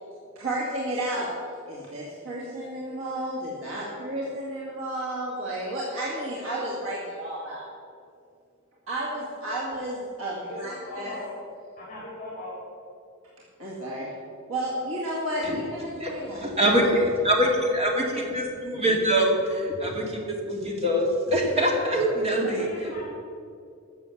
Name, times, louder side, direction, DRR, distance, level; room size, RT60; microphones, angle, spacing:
voice 1, 0.4-1.4 1.7-7.7 8.9-11.2 13.6-14.1 14.5-16.8, right 1 dB, 75° right, -5 dB, 2.2 m, -32 dB
voice 2, 10.4-11.3 11.8-12.5 22.4-23.0, left 1 dB, 40° left, -6 dB, 3.4 m, -39 dB
voice 3, 16.4-22.7, equal, 30° right, 0 dB, 2.2 m, -24 dB
13.5 x 7.0 x 7.2 m, 2.5 s
head